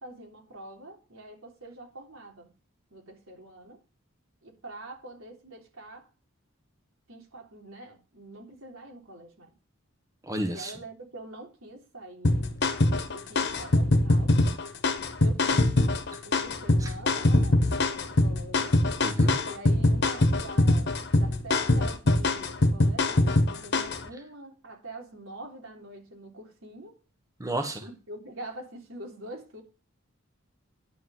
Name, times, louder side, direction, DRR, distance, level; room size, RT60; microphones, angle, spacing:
voice 1, 0.0-2.5 2.9-3.8 4.4-6.1 7.1-9.5 10.5-12.4 12.9-14.3 15.2-15.8 16.2-18.8 19.4-27.0 27.5-29.6, right 1 dB, 80° right, 3.5 m, -45 dB
voice 2, 10.3-10.7 19.0-19.3 27.4-27.8, right 1 dB, 15° right, 1.3 m, -31 dB
sound 1, 12.2-24.0, left 2 dB, 55° left, 1.2 m, -23 dB
10.5 x 5.0 x 7.8 m
head